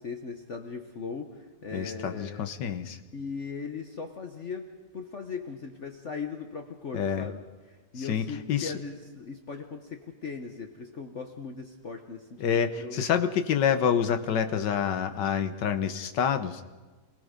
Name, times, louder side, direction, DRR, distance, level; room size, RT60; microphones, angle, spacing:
voice 1, 0.0-2.5 3.1-4.7 4.9-13.0, left 5 dB, 45° left, 5 dB, 1.3 m, -39 dB
voice 2, 1.7-3.0 6.9-7.3 8.0-8.7 12.4-16.6, left 8 dB, 90° left, 8 dB, 1.7 m, -27 dB
28.0 x 18.0 x 5.2 m, 1.3 s
omnidirectional pair, 1.8 m